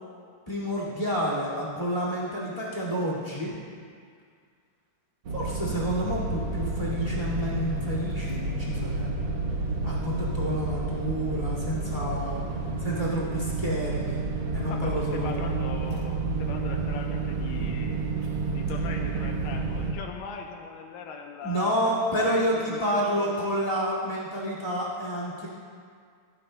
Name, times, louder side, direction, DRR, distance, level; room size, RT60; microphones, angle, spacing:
voice 1, 0.5-3.5 5.3-9.3 9.8-12.4 12.8-14.2 14.5-15.4 21.4-25.5, equal, 15° left, -4 dB, 1.5 m, -29 dB
sound 1, 5.3-19.9, right 3 dB, 75° right, 1.1 m, -30 dB
voice 2, 14.7-18.0 18.5-23.4, left 5 dB, 80° left, 3 dB, 2.3 m, -40 dB
16.0 x 13.5 x 2.2 m, 2.1 s
omnidirectional pair, 4.1 m